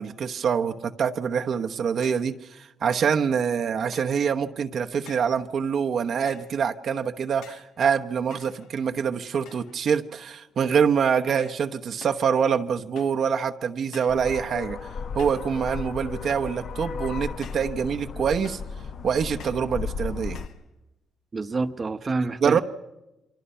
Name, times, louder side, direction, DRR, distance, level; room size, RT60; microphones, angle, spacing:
voice 1, 0.0-14.9 15.1-18.6 19.0-20.4 22.4-22.6, right 7 dB, 60° right, 5 dB, 1.0 m, -25 dB
sound 1, 2.0-2.3 2.9-3.2 3.9-4.3 5.1-5.4 6.3-6.6 7.4-7.7 8.3-9.0 9.5-9.8 10.2-10.6 11.4-11.7 12.0-12.3 13.0-13.3 13.9-14.3 15.2-15.5 16.3-16.6 17.4-17.8 18.4-18.8 19.4-19.7 20.3-20.6, left 7 dB, 85° left, 1.7 m, -48 dB
sound 2, 14.1-20.5, left 5 dB, 55° left, 1.2 m, -35 dB
voice 2, 21.3-22.6, right 3 dB, 30° right, 9 dB, 1.0 m, -27 dB
28.5 x 24.5 x 5.7 m, 0.97 s
cardioid pair, 90°, 0 cm